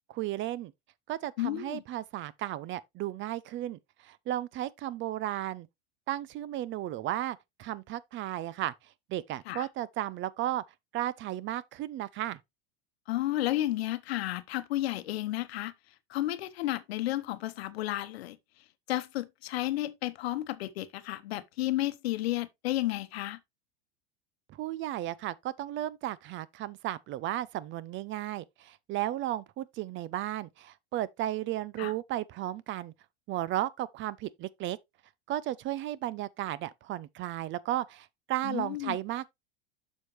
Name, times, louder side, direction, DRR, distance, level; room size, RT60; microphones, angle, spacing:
voice 1, 0.1-0.7 1.1-5.7 6.1-8.7 9.1-10.6 10.9-12.4 24.5-32.9 33.3-34.8 35.3-39.3, right 13 dB, 40° right, 0.6 m, -34 dB
voice 2, 1.4-1.8 9.5-9.7 13.1-15.7 16.1-18.4 18.9-23.4 31.8-31.9 38.4-39.0, left 15 dB, 75° left, 1.0 m, -32 dB
7.1 x 6.5 x 3.1 m
hypercardioid pair, 100°, 31 cm